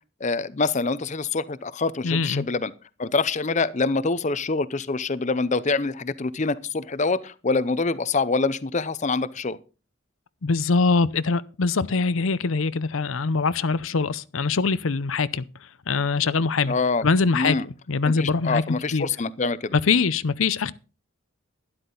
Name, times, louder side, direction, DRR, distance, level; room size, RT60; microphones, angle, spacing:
voice 1, 0.2-2.7 3.0-9.6 16.7-17.0 17.3-17.7 18.1-19.7, left 3 dB, 35° left, 0.6 m, -25 dB
voice 2, 2.0-2.5 10.4-15.4 15.9-16.7 17.0-17.6 17.9-18.6 18.9-19.0 19.7-20.7, left 4 dB, 75° left, 0.6 m, -23 dB
12.0 x 11.5 x 3.9 m
head